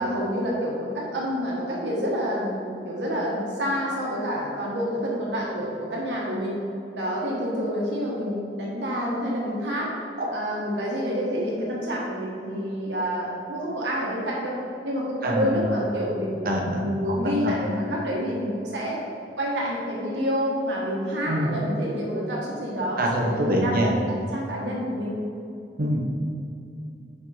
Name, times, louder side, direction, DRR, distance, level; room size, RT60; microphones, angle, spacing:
voice 1, 0.0-6.6 6.9-9.9 10.3-14.5 14.8-19.0 19.4-24.0 24.3-25.2, equal, 85° right, -4 dB, 1.3 m, -28 dB
voice 2, 15.2-15.6 16.5-16.8 17.2-17.6 21.3-21.5 23.0-24.0 25.8-26.0, right 1 dB, 55° right, 0 dB, 0.9 m, -25 dB
5.1 x 4.7 x 5.5 m, 2.6 s
head